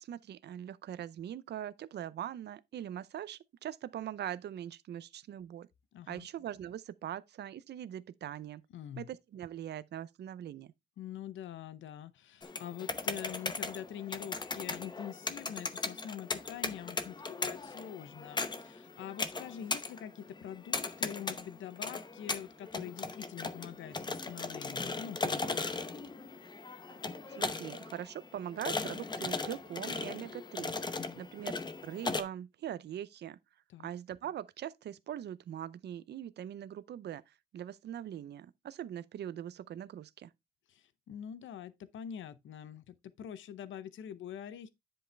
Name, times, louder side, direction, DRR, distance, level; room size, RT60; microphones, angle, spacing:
voice 1, 0.0-5.7 6.1-8.6 9.0-10.7 27.3-30.7 31.2-31.6 31.8-33.4 33.8-40.3, right 10 dB, 60° right, 0.5 m, -42 dB
voice 2, 5.9-6.3 8.7-9.1 11.0-25.8 31.0-31.2 33.7-33.9 40.7-44.7, left 9 dB, 75° left, 0.7 m, -45 dB
sound 1, 12.4-32.2, left 3 dB, 20° left, 0.8 m, -38 dB
10.0 x 5.4 x 3.3 m
wide cardioid pair, 155°, 20 cm